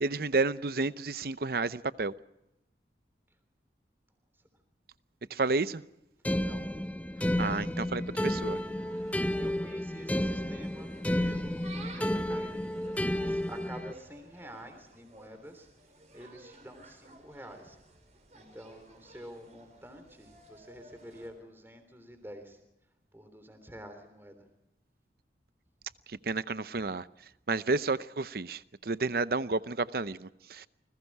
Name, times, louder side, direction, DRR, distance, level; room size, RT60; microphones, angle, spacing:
voice 1, 0.0-2.1 5.3-5.8 7.4-8.6 26.1-27.1 27.5-30.7, right 3 dB, 55° right, 0.7 m, -31 dB
voice 2, 5.3-5.6 6.4-6.7 7.3-7.6 9.1-15.7 16.1-17.8 18.3-22.6 23.1-24.4 26.8-26.9, equal, 15° right, 3.3 m, -48 dB
sound 1, 6.2-13.9, left 1 dB, 10° left, 0.7 m, -31 dB
Insect, 7.6-21.3, right 2 dB, 40° right, 5.8 m, -54 dB
29.0 x 21.0 x 4.7 m
head